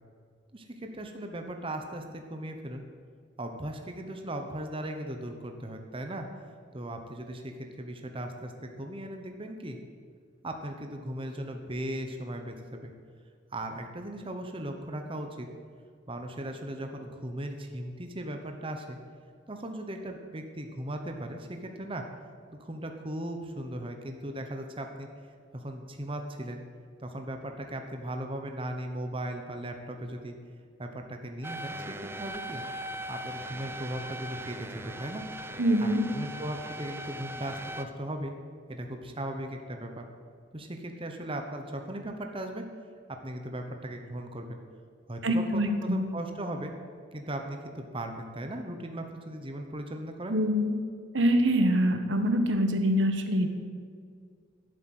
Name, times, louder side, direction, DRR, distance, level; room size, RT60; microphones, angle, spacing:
voice 1, 0.5-2.8 3.4-6.3 6.7-9.8 10.4-12.9 13.5-15.5 16.1-19.0 19.5-22.0 22.5-25.1 25.5-26.6 27.0-30.3 30.8-32.6 33.1-35.2 35.8-38.3 38.7-40.1 40.5-42.7 43.1-44.6 45.1-46.7 47.1-50.3, right 1 dB, 30° right, 4 dB, 1.0 m, -37 dB
sound 1, 31.4-37.8, right 1 dB, 15° right, 0.6 m, -40 dB
voice 2, 35.6-36.0 45.2-46.0 50.3-50.7 51.1-53.5, equal, 75° right, 6 dB, 1.3 m, -24 dB
11.5 x 8.3 x 8.0 m, 2.1 s
head